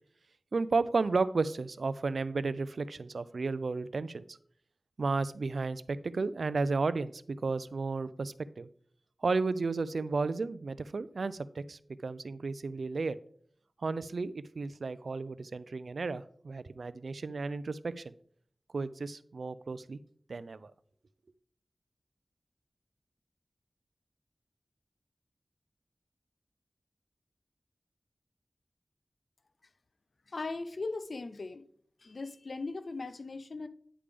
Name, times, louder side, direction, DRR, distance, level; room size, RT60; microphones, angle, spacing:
voice 1, 0.5-4.4 5.0-8.7 9.2-13.2 13.8-18.1 18.7-20.0 20.3-20.7, right 3 dB, 85° right, 0.3 m, -33 dB
voice 2, 30.3-31.6 32.0-33.7, left 3 dB, 70° left, 0.5 m, -38 dB
9.8 x 3.4 x 5.0 m
wide cardioid pair, 60°, 0 cm